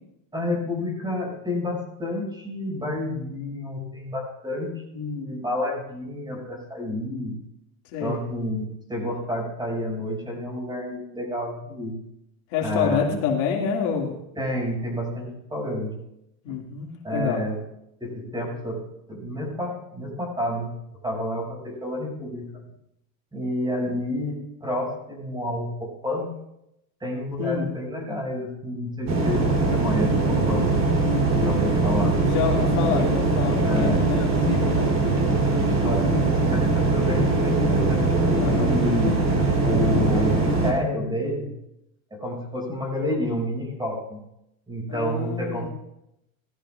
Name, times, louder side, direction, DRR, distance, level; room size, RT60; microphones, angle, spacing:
voice 1, 0.3-7.4 8.0-12.0 12.6-13.2 14.4-15.9 16.5-16.6 17.0-17.6 18.0-18.8 19.1-20.7 21.0-22.6 23.3-26.3 27.0-30.7 31.3-32.2 32.6-32.7 33.6-34.1 35.3-36.1 36.4-39.3 39.6-41.5 42.1-44.2 44.7-45.7, left 1 dB, 10° right, -1 dB, 5.9 m, -29 dB
voice 2, 12.5-14.1 16.4-17.4 27.4-27.7 32.3-34.9 38.4-38.7 44.9-45.7, left 6 dB, 70° left, 0 dB, 2.3 m, -27 dB
sound 1, 29.1-40.7, right 3 dB, 35° right, 3.2 m, -21 dB
18.5 x 13.0 x 2.4 m, 0.83 s
supercardioid pair, 135°, 44 cm